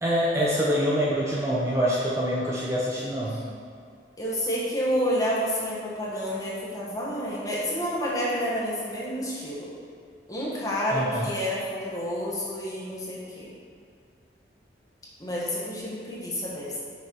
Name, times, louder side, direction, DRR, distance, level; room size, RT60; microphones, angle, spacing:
voice 1, 0.0-3.4 10.9-11.3, equal, 15° right, -5 dB, 0.6 m, -25 dB
voice 2, 4.2-9.7 10.3-13.5 15.2-16.8, equal, 20° left, -6 dB, 1.3 m, -29 dB
6.2 x 4.2 x 4.7 m, 2.2 s
head